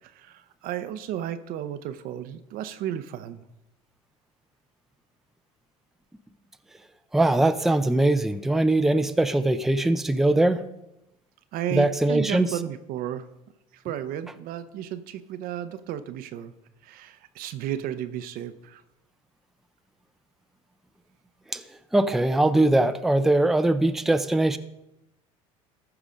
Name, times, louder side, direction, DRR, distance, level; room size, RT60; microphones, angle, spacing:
voice 1, 0.0-3.4 11.5-13.3 13.7-16.5 16.8-18.8, right 11 dB, 60° right, 12 dB, 0.8 m, -33 dB
voice 2, 7.1-10.6 11.7-12.5 21.5-21.6 21.9-24.6, right 2 dB, ahead, 9 dB, 0.5 m, -21 dB
14.0 x 4.9 x 5.2 m, 0.89 s
supercardioid pair, 95°, 17 cm